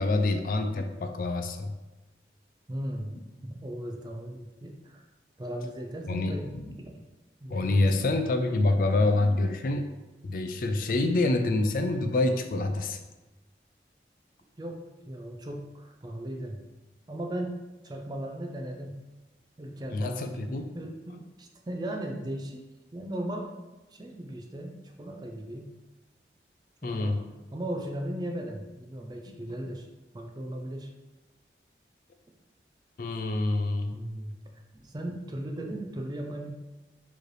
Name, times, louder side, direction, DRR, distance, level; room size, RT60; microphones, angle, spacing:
voice 1, 0.0-1.8 6.1-6.8 7.5-9.9 10.2-13.0 19.9-20.7 26.8-27.3 29.3-29.4 33.0-34.0, left 2 dB, 50° left, 6 dB, 0.3 m, -27 dB
voice 2, 2.7-5.0 5.4-6.5 6.8-6.9 7.4-8.1 14.6-14.8 15.1-16.6 17.1-19.0 19.6-22.6 22.9-23.5 23.9-25.7 26.8-27.2 27.5-29.9 30.1-30.9 33.9-34.3 34.7-36.5, right 1 dB, 25° right, 2 dB, 0.4 m, -37 dB
4.6 x 3.2 x 3.1 m, 1.1 s
head